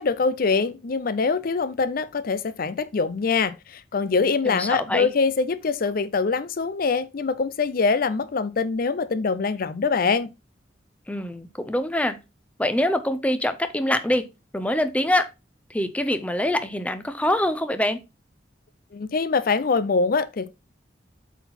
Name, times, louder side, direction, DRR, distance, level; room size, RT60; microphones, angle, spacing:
voice 1, 0.0-10.3 18.9-20.5, left 4 dB, 50° left, 0.5 m, -24 dB
voice 2, 4.4-5.1 11.1-12.2 12.6-14.2 14.5-15.3 15.7-18.0, left 1 dB, 10° left, 0.7 m, -24 dB
8.2 x 4.0 x 4.2 m
head